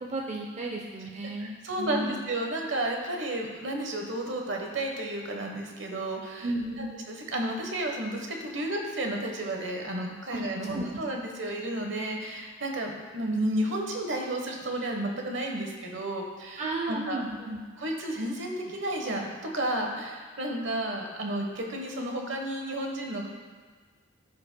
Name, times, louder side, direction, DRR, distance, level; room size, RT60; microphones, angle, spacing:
voice 1, 0.0-2.2 6.4-7.0 10.3-10.4 10.7-10.9 16.6-17.6, right 2 dB, 35° right, 0 dB, 0.6 m, -34 dB
voice 2, 1.4-6.5 6.8-17.2 17.8-23.3, right 1 dB, 70° right, 2 dB, 1.1 m, -32 dB
14.5 x 5.3 x 2.2 m, 1.5 s
head